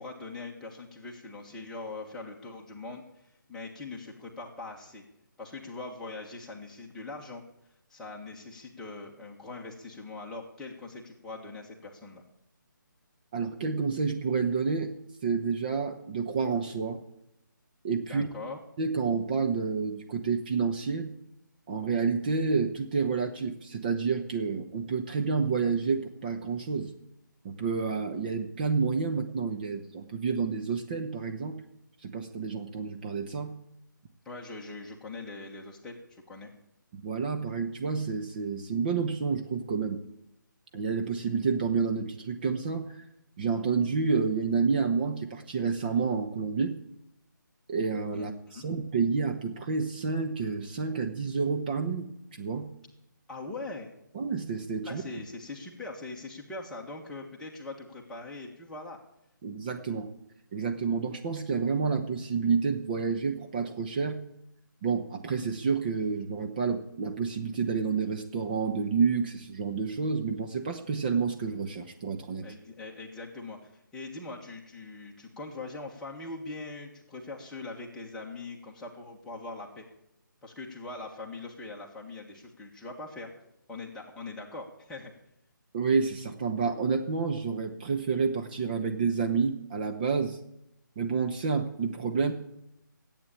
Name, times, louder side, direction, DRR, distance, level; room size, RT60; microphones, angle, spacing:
voice 1, 0.0-5.0 5.4-7.4 7.9-12.2 18.0-18.6 34.2-36.5 48.1-48.7 53.3-53.9 54.8-59.0 72.4-79.9 80.4-83.3 83.7-85.1, left 3 dB, 5° left, -2 dB, 1.6 m, -42 dB
voice 2, 13.3-14.9 15.2-17.0 17.8-18.3 18.8-21.1 21.7-26.9 27.4-31.6 32.0-33.5 36.9-40.0 40.7-43.1 43.4-46.8 47.7-52.7 54.1-55.0 59.4-60.1 60.5-64.2 64.8-72.5 85.7-90.4 91.0-92.3, right 5 dB, 25° right, 3 dB, 1.0 m, -29 dB
15.0 x 9.0 x 8.5 m, 0.84 s
figure-of-eight pair, 150°, 11 cm